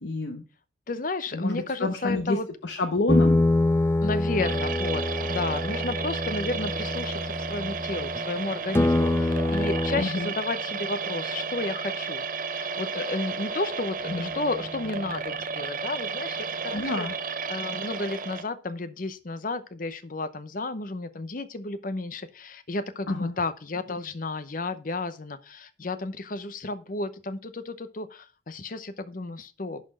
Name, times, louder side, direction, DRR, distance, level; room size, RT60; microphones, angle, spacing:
voice 1, 0.0-0.4 1.3-3.4 10.0-10.3 14.1-14.3 16.7-17.1 23.1-23.3, left 2 dB, 70° left, 5 dB, 1.0 m, -29 dB
voice 2, 0.9-2.5 4.0-12.2 12.5-17.1 17.5-29.8, left 2 dB, 45° left, 12 dB, 0.8 m, -32 dB
sound 1, 3.1-8.3 8.7-10.0, left 2 dB, 15° left, 0.3 m, -25 dB
sound 2, 4.4-18.4, right 5 dB, 45° right, 0.8 m, -33 dB
11.0 x 4.3 x 5.5 m, 0.35 s
head